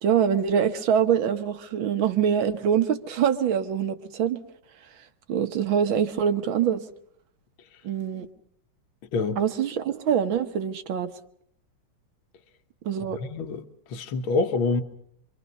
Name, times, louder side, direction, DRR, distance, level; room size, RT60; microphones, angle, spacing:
voice 1, 0.0-4.4 4.8-6.9 7.8-8.3 9.4-11.1 12.8-13.2, right 8 dB, 70° right, 1.9 m, -24 dB
voice 2, 9.1-9.4 13.3-13.6 13.9-14.8, left 3 dB, 75° left, 2.0 m, -25 dB
26.0 x 24.0 x 5.4 m
omnidirectional pair, 2.3 m